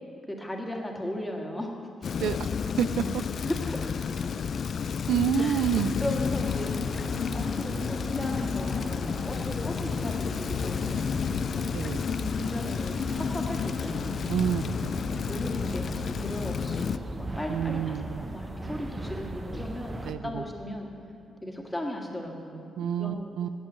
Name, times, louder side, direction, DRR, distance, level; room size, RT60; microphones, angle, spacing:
voice 1, 0.4-1.7 3.4-3.9 5.4-5.6 6.0-7.1 7.3-11.0 11.5-11.7 12.3-14.3 15.2-20.9 21.4-22.7 23.0-23.3, left 1 dB, 10° left, 1 dB, 1.7 m, -36 dB
Rain, 2.0-17.0, left 6 dB, 55° left, 0.3 m, -31 dB
voice 2, 2.2-2.5 2.8-3.2 5.1-5.9 11.7-12.0 14.3-14.9 17.5-18.2 20.1-20.4 22.8-23.5, right 9 dB, 80° right, 12 dB, 0.3 m, -28 dB
sound 1, 6.4-20.1, right 2 dB, 25° right, 0.7 m, -39 dB
8.9 x 7.6 x 8.7 m, 2.5 s
cardioid pair, 80°, 0 cm